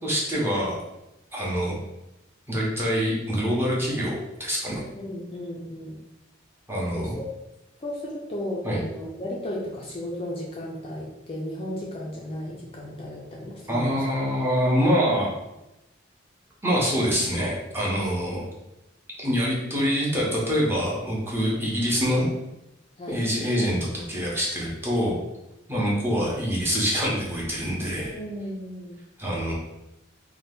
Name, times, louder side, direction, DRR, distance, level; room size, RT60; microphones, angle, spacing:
voice 1, 0.0-0.8 1.3-1.8 2.5-4.8 6.7-7.2 8.6-8.8 13.7-15.3 16.6-18.4 19.2-22.3 23.1-25.2 25.7-28.1 29.2-29.5, equal, 10° right, -5 dB, 0.7 m, -25 dB
voice 2, 4.9-6.0 7.0-7.3 7.8-14.0 23.0-23.2 28.1-28.9, left 1 dB, 30° left, -3 dB, 0.4 m, -34 dB
2.7 x 2.2 x 3.4 m, 0.92 s
head